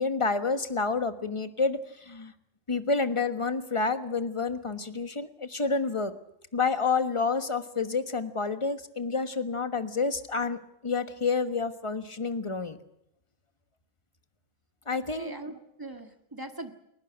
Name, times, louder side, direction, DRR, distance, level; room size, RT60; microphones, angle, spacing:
voice 1, 0.0-2.3 2.7-6.1 6.5-12.8 14.9-15.3, left 4 dB, 25° left, 9 dB, 1.3 m, -29 dB
voice 2, 14.9-16.7, right 2 dB, 15° right, 6 dB, 1.8 m, -40 dB
28.0 x 12.0 x 10.0 m, 0.82 s
omnidirectional pair, 1.3 m